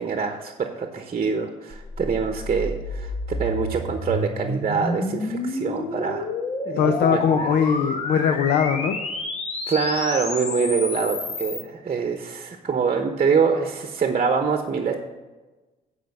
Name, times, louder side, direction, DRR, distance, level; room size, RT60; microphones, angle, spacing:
voice 1, 0.0-3.1 3.4-6.3 6.6-7.6 9.7-14.9, right 5 dB, 40° right, 5 dB, 1.0 m, -25 dB
sound 1, 1.7-11.6, left 2 dB, 40° left, 1.5 m, -30 dB
voice 2, 6.8-9.0, left 7 dB, 75° left, 8 dB, 0.7 m, -21 dB
9.2 x 5.1 x 6.6 m, 1.2 s
cardioid pair, 80°, 17 cm